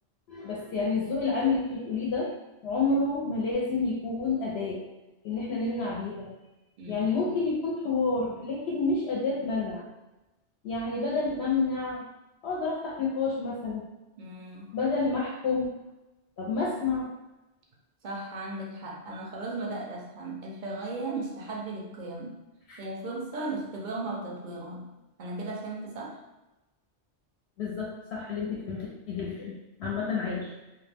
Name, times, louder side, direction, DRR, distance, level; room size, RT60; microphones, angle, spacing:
voice 1, 0.3-2.3 2.6-4.8 5.2-6.3 6.9-9.9 10.6-12.0 12.4-13.8 14.7-15.7 16.4-17.1 22.7-22.8 27.6-30.5, left 4 dB, 70° left, -4 dB, 0.8 m, -29 dB
voice 2, 14.2-14.7 18.0-22.4 22.8-24.9 25.2-26.2, right 2 dB, 55° right, -1 dB, 0.6 m, -36 dB
2.3 x 2.1 x 3.3 m, 1.0 s
omnidirectional pair, 1.2 m